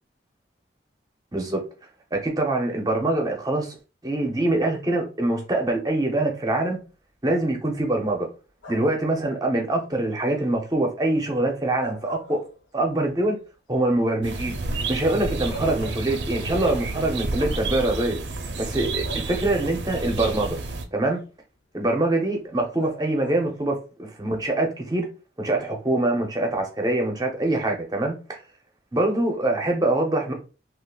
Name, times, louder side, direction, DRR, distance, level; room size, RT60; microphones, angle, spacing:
voice 1, 1.3-1.6 2.1-3.8 4.0-6.8 7.2-8.3 8.7-12.4 12.7-13.4 13.7-14.6 14.9-18.2 18.6-20.6 20.9-21.2 21.7-25.1 25.4-28.4 28.9-30.3, right 2 dB, 20° right, 0.6 m, -24 dB
sound 1, 8.6-9.1 11.6-13.0 13.4-13.5 15.0-15.1 15.5-16.6 17.6-17.8 19.0-19.7 22.8-23.7, right 1 dB, 80° left, 0.7 m, -41 dB
sound 2, 14.2-20.8, right 3 dB, 75° right, 0.5 m, -30 dB
3.7 x 2.4 x 2.3 m
head